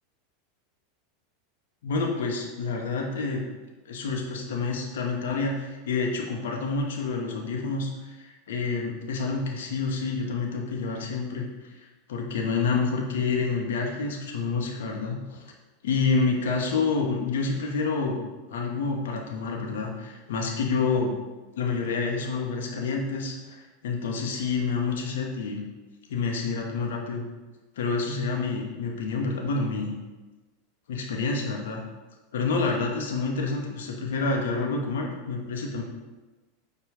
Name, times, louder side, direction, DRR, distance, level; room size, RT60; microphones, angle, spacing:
voice 1, 1.8-3.4 3.9-15.5 15.8-21.1 21.6-25.6 26.1-27.2 27.8-29.9 30.9-31.8 32.3-35.8, left 4 dB, 70° left, 0 dB, 0.7 m, -28 dB
5.0 x 2.2 x 4.8 m, 1.2 s
hypercardioid pair, 90°, 0 cm